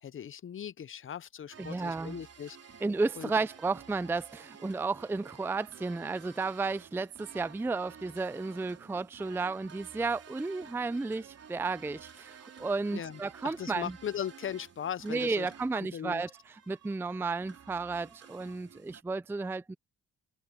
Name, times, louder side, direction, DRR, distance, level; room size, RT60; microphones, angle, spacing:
voice 1, 0.0-2.8 3.2-3.3 12.9-15.5 15.7-16.2, left 9 dB, 45° left, 0.6 m, -39 dB
sound 1, 1.5-19.0, right 7 dB, 55° right, 3.7 m, -53 dB
voice 2, 1.6-2.2 2.8-13.9 15.0-16.3 16.7-19.7, right 3 dB, 10° right, 0.4 m, -33 dB
cardioid pair, 85°, 29 cm